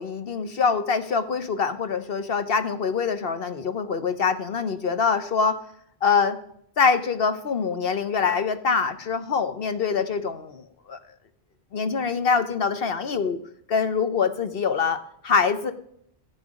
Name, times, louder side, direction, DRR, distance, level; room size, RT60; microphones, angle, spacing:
voice 1, 0.0-5.6 6.0-6.4 6.8-11.0 11.7-13.4 13.7-15.7, left 5 dB, 55° left, 10 dB, 1.1 m, -24 dB
15.0 x 8.3 x 5.0 m, 0.67 s
omnidirectional pair, 1.2 m